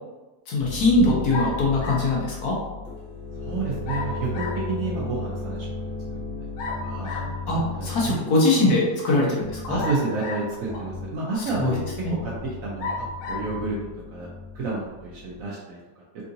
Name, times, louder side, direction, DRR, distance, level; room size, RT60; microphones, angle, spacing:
voice 1, 0.5-2.6 7.1-9.8 11.6-11.7 12.0-12.1, left 2 dB, 65° left, -4 dB, 1.2 m, -22 dB
sound 1, 0.6-8.3 9.3-9.9 10.6-11.2 11.4-15.5, left 4 dB, 35° right, 1.2 m, -35 dB
sound 2, 1.3-2.2 3.9-4.7 6.6-7.4 9.8-10.6 11.4-11.5 12.8-13.5, left 3 dB, 85° left, 1.3 m, -33 dB
voice 2, 3.4-5.9 6.8-7.1 7.7-8.2 9.7-11.8 12.2-12.3 12.6-12.9 13.3-13.8 14.1-14.3 14.5-16.0, right 3 dB, 65° right, -4 dB, 0.9 m, -30 dB
3.7 x 2.4 x 2.6 m, 1.2 s
omnidirectional pair, 1.9 m